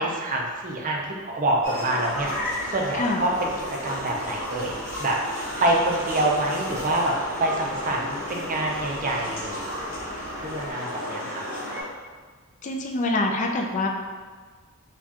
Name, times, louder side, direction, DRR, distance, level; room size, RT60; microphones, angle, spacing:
voice 1, 0.0-4.7 5.0-5.2 5.6-7.1 7.4-9.6 10.3-11.4, right 1 dB, 35° right, 0 dB, 0.5 m, -26 dB
sound 1, 1.6-11.8, equal, 10° right, 1.3 m, -33 dB
sound 2, 2.0-10.7, left 1 dB, 60° left, 0.7 m, -46 dB
voice 2, 2.9-3.3 12.6-13.9, left 2 dB, 35° left, 1 dB, 0.4 m, -25 dB
4.6 x 2.3 x 2.8 m, 1.5 s
head